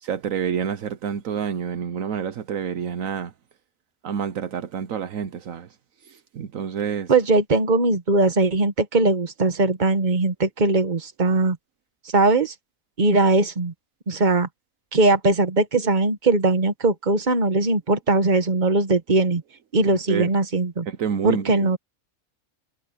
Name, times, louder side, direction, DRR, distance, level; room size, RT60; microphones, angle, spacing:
voice 1, 0.0-3.3 4.0-5.7 6.1-7.1 19.9-20.3 20.9-21.8, right 7 dB, 70° right, 1.2 m, -28 dB
voice 2, 7.1-11.6 12.1-12.5 13.0-13.7 14.1-14.5 14.9-19.4 19.7-20.9 21.2-21.8, right 2 dB, 35° right, 1.5 m, -20 dB
omnidirectional pair, 1.5 m